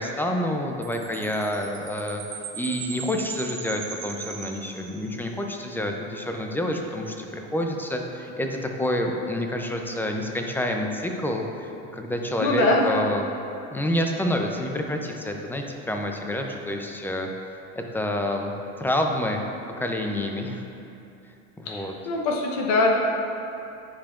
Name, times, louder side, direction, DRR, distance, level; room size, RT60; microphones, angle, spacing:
voice 1, 0.0-2.2 2.5-13.3 13.7-17.3 17.7-18.5 18.8-19.4 19.8-20.6 21.6-21.9, left 1 dB, 5° left, 2 dB, 0.5 m, -28 dB
Chime, 0.8-5.3, right 7 dB, 80° right, 1.0 m, -39 dB
voice 2, 12.4-12.9 21.7-23.0, left 2 dB, 60° left, 0 dB, 1.0 m, -22 dB
10.0 x 4.9 x 2.5 m, 2.8 s
supercardioid pair, 100°, 38 cm